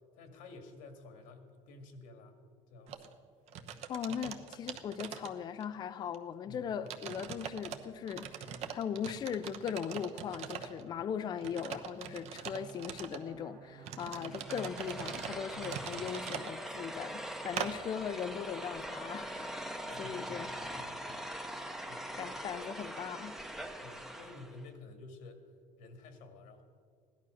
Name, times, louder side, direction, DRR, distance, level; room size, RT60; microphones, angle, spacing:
voice 1, 0.1-2.4 2.7-3.1 6.5-6.9 10.6-11.0 19.8-21.2 21.9-22.1 23.8-25.4 25.8-26.6, left 3 dB, 85° left, 2.0 m, -52 dB
sound 1, 2.9-3.1 3.5-5.7 6.1-6.2 6.9-7.8 8.1-10.8 11.4-13.2 13.8-16.5 17.6-17.7, right 8 dB, 55° right, 1.0 m, -42 dB
voice 2, 3.9-20.5 22.2-23.4, left 8 dB, 30° left, 0.4 m, -39 dB
Bowed string instrument, 12.2-17.1, right 5 dB, 90° right, 1.6 m, -53 dB
sound 2, 14.3-24.6, right 1 dB, 5° right, 0.7 m, -42 dB
16.5 x 11.5 x 6.4 m
cardioid pair, 160°, 13 cm